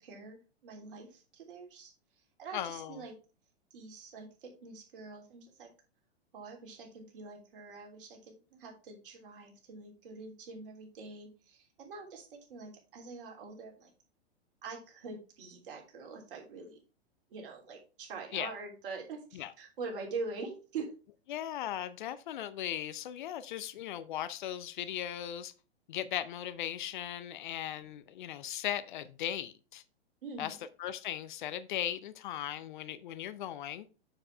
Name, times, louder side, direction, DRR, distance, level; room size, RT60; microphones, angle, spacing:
voice 1, 0.0-1.9 2.4-3.1 3.7-5.7 6.3-13.9 14.6-16.8 17.3-20.9 30.2-30.6, right 4 dB, 55° right, 3.2 m, -44 dB
voice 2, 2.5-3.0 18.3-18.5 19.4-19.5 21.3-25.5 25.9-29.8 30.4-33.9, left 11 dB, 50° left, 0.7 m, -38 dB
7.1 x 6.8 x 3.3 m
figure-of-eight pair, 105°, 32 cm